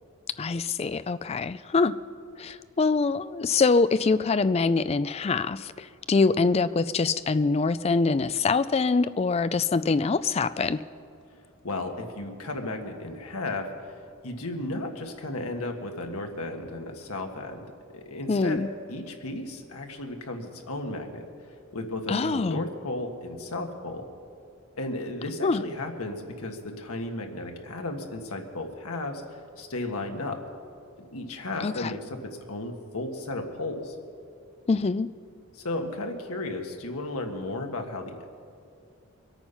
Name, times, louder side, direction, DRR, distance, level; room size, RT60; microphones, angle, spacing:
voice 1, 0.4-2.0 2.4-10.8 18.3-18.7 22.1-22.7 25.4-25.6 31.6-31.9 34.7-35.1, left 4 dB, 30° left, 15 dB, 0.3 m, -24 dB
voice 2, 11.6-13.9 14.2-17.6 17.9-18.6 18.9-24.1 24.8-30.4 31.1-33.9 35.5-38.2, left 2 dB, 85° left, 3 dB, 1.6 m, -34 dB
23.5 x 8.9 x 5.7 m, 2.5 s
head